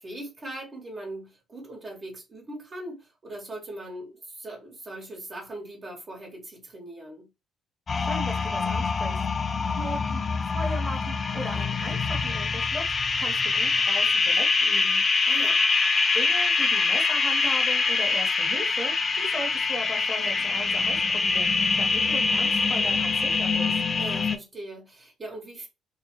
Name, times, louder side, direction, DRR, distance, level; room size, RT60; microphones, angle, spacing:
voice 1, 0.0-7.3 15.3-15.6 24.0-25.7, right 1 dB, 40° right, 1.2 m, -40 dB
sound 1, 7.9-24.4, left 4 dB, 40° left, 0.4 m, -24 dB
voice 2, 8.0-12.8 13.2-15.0 16.1-23.8, equal, ahead, 1.1 m, -38 dB
2.7 x 2.0 x 3.0 m
figure-of-eight pair, 45°, 0 cm